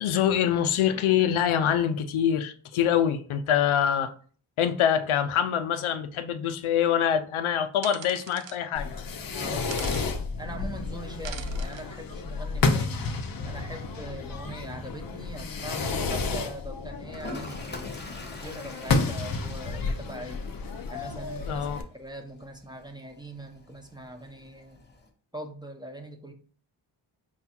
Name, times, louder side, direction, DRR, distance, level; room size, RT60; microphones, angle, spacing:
voice 1, 0.0-4.1 4.6-8.9 21.5-21.8, left 9 dB, 90° left, 0.6 m, -25 dB
sound 1, 7.8-8.6 9.7-10.1 11.2-11.8, right 8 dB, 70° right, 0.6 m, -41 dB
Fireworks, 8.7-21.8, left 4 dB, 45° left, 0.7 m, -31 dB
voice 2, 9.3-10.1 10.4-13.1 13.4-20.4 20.9-21.7 21.9-24.8 25.3-26.3, right 1 dB, 10° right, 0.8 m, -42 dB
Toilet flush, 17.1-25.1, left 2 dB, 20° left, 1.0 m, -45 dB
4.8 x 2.3 x 4.3 m
cardioid pair, 60°, 47 cm